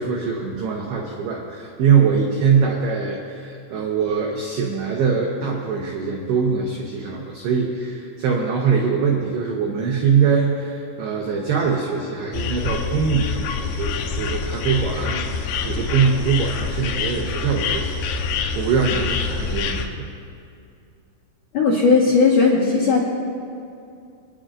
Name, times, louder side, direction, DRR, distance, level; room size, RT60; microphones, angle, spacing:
voice 1, 0.0-20.1, right 6 dB, 85° right, -1 dB, 2.2 m, -22 dB
sound 1, 12.3-19.9, left 5 dB, 90° left, 2.4 m, -26 dB
voice 2, 21.5-23.0, left 4 dB, 70° left, -4 dB, 2.0 m, -16 dB
28.0 x 9.9 x 2.6 m, 2.5 s
omnidirectional pair, 6.0 m